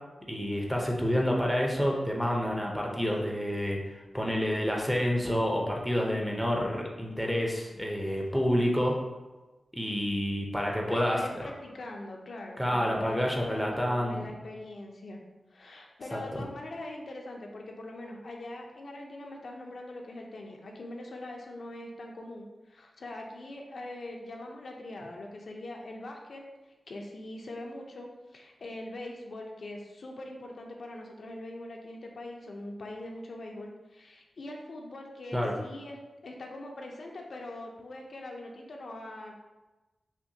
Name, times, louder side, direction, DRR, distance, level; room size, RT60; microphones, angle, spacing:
voice 1, 0.3-3.8 4.1-9.0 9.7-11.2 12.6-14.3 16.1-16.4 35.3-35.5, equal, ahead, -1 dB, 0.6 m, -28 dB
voice 2, 10.9-15.2 15.5-36.0 36.2-39.3, left 1 dB, 60° left, 1 dB, 0.5 m, -42 dB
5.7 x 2.1 x 2.7 m, 1.1 s
wide cardioid pair, 135°, 0 cm